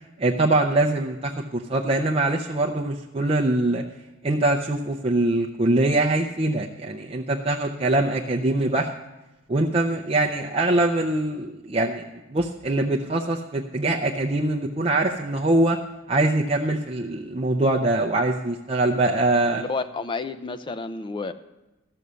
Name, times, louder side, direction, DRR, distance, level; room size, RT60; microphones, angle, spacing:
voice 1, 0.2-3.8 4.2-8.9 9.5-12.0 12.3-15.8 16.1-19.6, right 2 dB, 30° right, 0 dB, 0.5 m, -23 dB
voice 2, 19.5-21.3, left 3 dB, 25° left, 11 dB, 0.4 m, -30 dB
13.5 x 6.3 x 6.8 m, 1.0 s
head